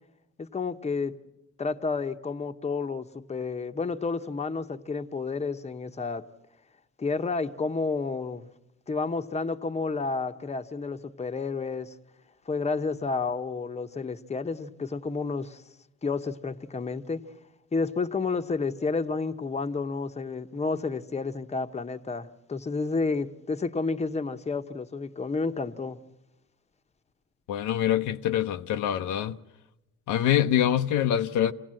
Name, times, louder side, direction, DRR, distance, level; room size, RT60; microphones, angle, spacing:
voice 1, 0.4-1.1 1.6-6.3 7.0-8.4 8.9-11.9 12.5-15.6 16.0-17.2 17.7-26.0, left 4 dB, 20° left, 0.9 m, -30 dB
voice 2, 27.5-29.4 30.1-31.5, left 10 dB, 80° left, 0.7 m, -25 dB
26.5 x 17.5 x 7.6 m
cardioid pair, 90°, 30 cm